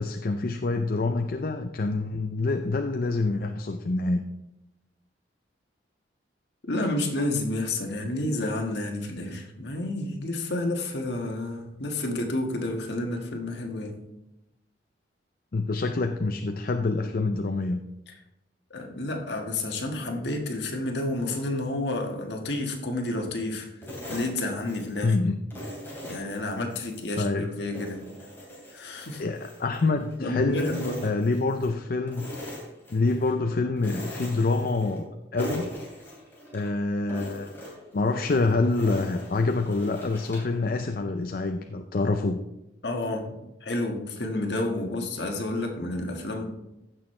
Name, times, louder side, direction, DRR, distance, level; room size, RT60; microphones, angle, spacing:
voice 1, 0.0-4.2 15.5-17.8 25.0-25.4 27.2-27.5 29.2-32.3 32.9-35.7 36.5-37.5 37.9-42.4, left 3 dB, 50° left, 6 dB, 0.5 m, -26 dB
voice 2, 6.7-14.0 18.7-23.7 24.1-25.2 26.0-28.0 28.7-29.2 30.2-31.0 42.8-43.4 43.6-46.5, left 2 dB, 65° left, 2 dB, 1.5 m, -30 dB
sound 1, 23.8-25.1 25.5-27.1 27.5-30.2 30.5-31.7 32.1-33.3 33.8-35.1 35.4-36.7 37.1-40.6, equal, 10° left, 3.1 m, -41 dB
15.5 x 6.2 x 3.2 m, 0.93 s
head